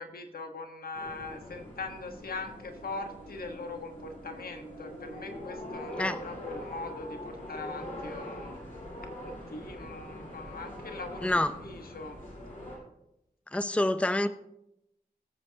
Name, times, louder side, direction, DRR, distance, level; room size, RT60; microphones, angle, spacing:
voice 1, 0.0-8.6 9.2-12.2, left 3 dB, 80° left, 5 dB, 1.4 m, -41 dB
sound 1, 0.9-12.8, equal, 60° left, 5.3 m, -43 dB
voice 2, 13.5-14.3, left 1 dB, 10° left, 11 dB, 0.6 m, -26 dB
20.0 x 8.2 x 2.9 m, 0.84 s
cardioid pair, 55°, 15 cm